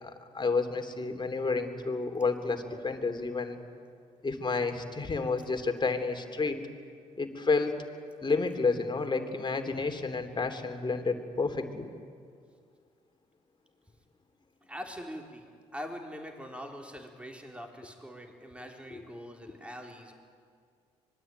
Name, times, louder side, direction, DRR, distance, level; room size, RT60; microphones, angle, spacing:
voice 1, 0.0-3.6 4.2-6.6 7.2-7.7 8.2-11.9 18.9-19.0, left 4 dB, 30° left, 6 dB, 3.3 m, -30 dB
voice 2, 14.7-15.5 15.7-20.1, equal, 10° right, 2 dB, 4.1 m, -43 dB
25.0 x 22.0 x 9.5 m, 2.2 s
hypercardioid pair, 55°, 15 cm